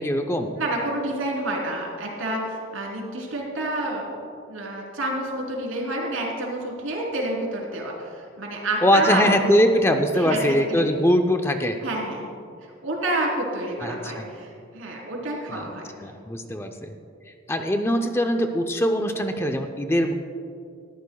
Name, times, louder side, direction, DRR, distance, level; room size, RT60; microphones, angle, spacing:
voice 1, 0.0-0.5 8.8-11.8 13.8-14.3 15.5-15.7 16.0-16.9 17.5-20.1, equal, 10° left, 5 dB, 0.5 m, -22 dB
voice 2, 0.6-4.2 4.5-9.6 10.1-10.8 11.8-12.3 12.8-15.8, right 1 dB, 85° right, -2 dB, 3.4 m, -29 dB
19.5 x 14.5 x 2.3 m, 2.4 s
head